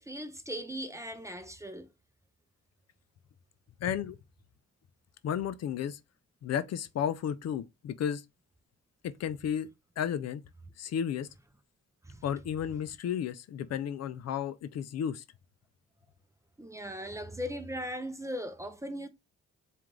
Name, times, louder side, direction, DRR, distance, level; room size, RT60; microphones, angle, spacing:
voice 1, 0.0-1.9 12.0-12.2 16.6-19.1, equal, 10° right, 0.6 m, -38 dB
voice 2, 3.8-4.2 5.2-6.0 6.4-8.2 9.0-9.7 10.0-10.4 10.8-11.3 12.2-15.2, left 8 dB, 60° left, 0.5 m, -33 dB
4.5 x 2.5 x 3.7 m
cardioid pair, 90°, 30 cm